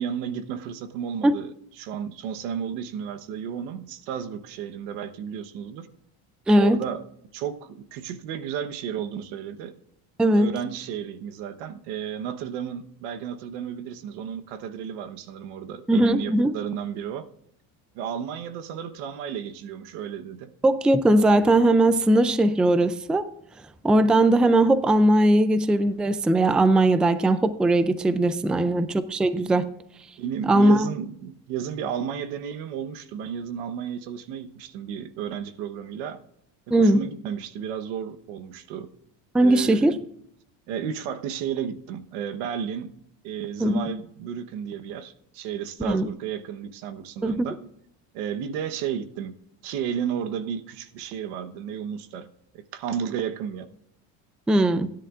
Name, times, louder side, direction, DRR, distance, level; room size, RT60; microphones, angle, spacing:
voice 1, 0.0-5.9 6.6-7.0 7.3-9.7 10.3-17.3 17.9-20.5 28.5-28.9 30.2-36.2 36.7-38.9 39.4-40.0 40.7-42.9 43.2-47.6 48.1-52.3 52.5-53.7, right 8 dB, 85° right, 9 dB, 1.1 m, -33 dB
voice 2, 6.5-6.8 10.2-10.5 15.9-16.5 20.6-23.3 23.8-29.6 30.5-30.9 36.7-37.0 39.3-39.9 43.6-43.8 45.8-46.1 47.2-47.5 54.5-54.9, right 1 dB, 5° right, 12 dB, 0.3 m, -19 dB
16.5 x 10.0 x 2.5 m, 0.72 s
cardioid pair, 140°, 37 cm